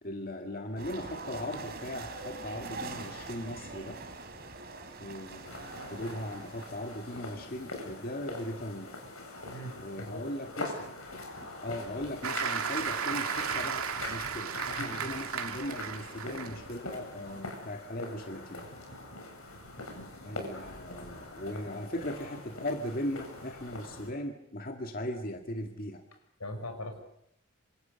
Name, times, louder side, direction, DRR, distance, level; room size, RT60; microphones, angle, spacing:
voice 1, 0.0-4.0 5.0-8.9 9.8-10.8 11.4-18.7 20.2-26.0, left 1 dB, 40° left, 4 dB, 1.9 m, -38 dB
sound 1, 0.8-7.5, right 3 dB, 45° right, 3.6 m, -43 dB
sound 2, 5.4-24.1, left 2 dB, 75° left, 7.9 m, -43 dB
voice 2, 9.5-10.3 14.8-15.1 26.4-27.0, left 1 dB, 90° left, 6 dB, 6.5 m, -41 dB
Applause, 12.2-16.7 17.2-17.4, right 6 dB, 80° right, 2.4 m, -34 dB
27.0 x 26.5 x 6.9 m, 0.76 s
head